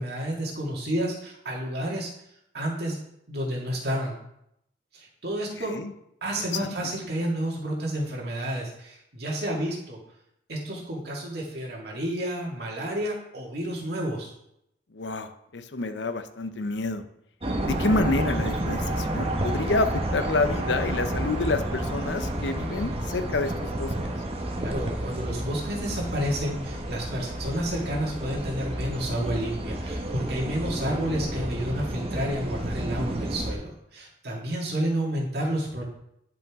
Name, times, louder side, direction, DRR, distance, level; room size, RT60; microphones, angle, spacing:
voice 1, 0.0-2.1 2.5-3.0 3.3-4.2 4.9-5.8 6.2-10.0 10.5-14.3 24.6-35.8, right 1 dB, 60° right, -2 dB, 2.1 m, -30 dB
voice 2, 14.9-17.1 17.6-24.1, left 3 dB, 85° left, 9 dB, 0.7 m, -28 dB
sound 1, 17.4-33.5, right 1 dB, 35° right, 1.1 m, -30 dB
10.5 x 5.4 x 3.6 m, 0.78 s
head